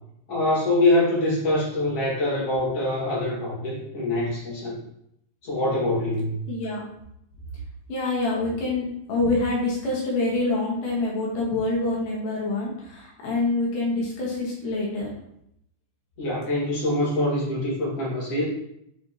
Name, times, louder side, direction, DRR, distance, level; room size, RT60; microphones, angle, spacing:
voice 1, 0.3-4.8 5.4-6.4 16.2-18.4, left 1 dB, 50° left, -6 dB, 2.5 m, -24 dB
voice 2, 6.5-6.8 7.9-15.1, left 2 dB, 70° left, -4 dB, 2.8 m, -26 dB
7.7 x 4.3 x 2.8 m, 0.75 s
omnidirectional pair, 4.0 m